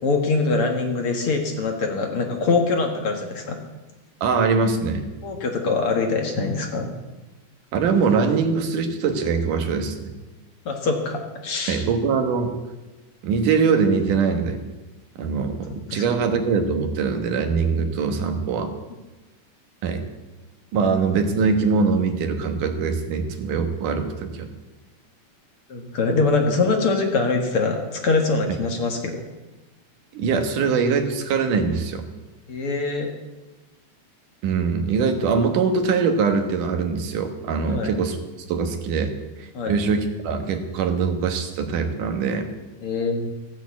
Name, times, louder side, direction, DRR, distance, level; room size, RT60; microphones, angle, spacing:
voice 1, 0.0-3.6 5.2-6.9 10.7-11.8 15.9-16.0 25.7-29.2 32.5-33.1 37.7-37.9 39.5-39.8 42.8-43.3, left 3 dB, 50° left, 3 dB, 2.1 m, -23 dB
voice 2, 4.2-5.1 7.7-10.1 11.7-12.5 13.2-14.6 15.2-18.7 19.8-20.0 20.7-24.5 30.1-32.0 34.4-38.2 38.5-39.1 39.4-42.5, right 5 dB, 85° right, 6 dB, 3.0 m, -22 dB
15.5 x 8.8 x 8.3 m, 1.1 s
omnidirectional pair, 3.6 m